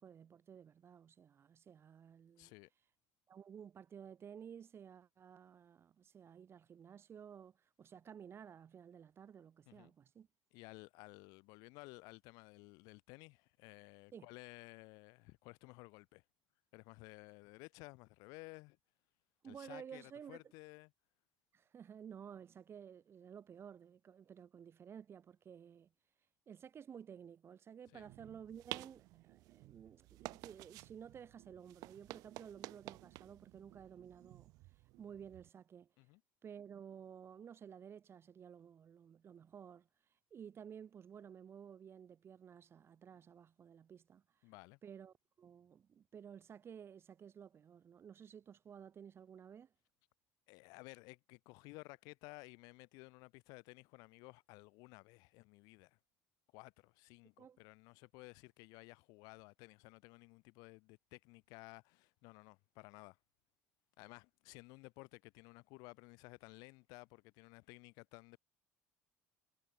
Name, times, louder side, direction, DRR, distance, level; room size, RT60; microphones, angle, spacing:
voice 1, 0.0-2.5 3.3-10.3 14.1-14.3 19.4-20.4 21.5-25.9 26.5-34.5 35.0-35.9 36.4-39.9 40.3-44.2 44.8-49.7 57.4-57.6, right 8 dB, 40° right, 3.8 m, -54 dB
voice 2, 2.4-2.7 9.7-9.9 10.5-16.2 16.7-18.8 19.4-20.9 27.9-28.1 36.0-36.2 44.4-44.8 50.5-56.0 56.5-63.2 64.0-68.4, left 26 dB, 75° left, 6.9 m, -56 dB
sound 1, 27.9-35.5, right 21 dB, 70° right, 4.6 m, -52 dB
supercardioid pair, 90°, 7 cm